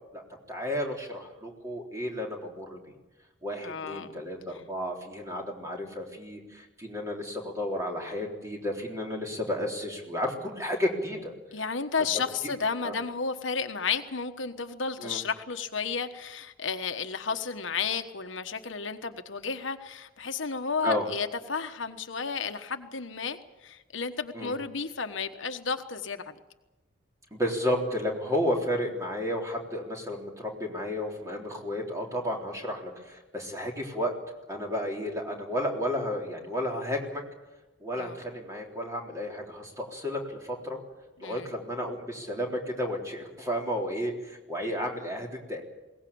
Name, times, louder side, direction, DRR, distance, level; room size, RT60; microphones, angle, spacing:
voice 1, 0.1-2.8 3.4-11.3 12.8-12.9 15.0-15.2 20.8-21.1 24.3-24.5 27.3-34.2 34.5-37.2 37.8-40.8 41.2-45.6, equal, 15° right, 1 dB, 3.6 m, -32 dB
voice 2, 3.6-4.2 4.5-4.6 11.5-26.3 38.0-38.2 41.2-41.5, left 5 dB, 75° left, 7 dB, 1.3 m, -32 dB
22.0 x 18.0 x 8.7 m, 1.1 s
head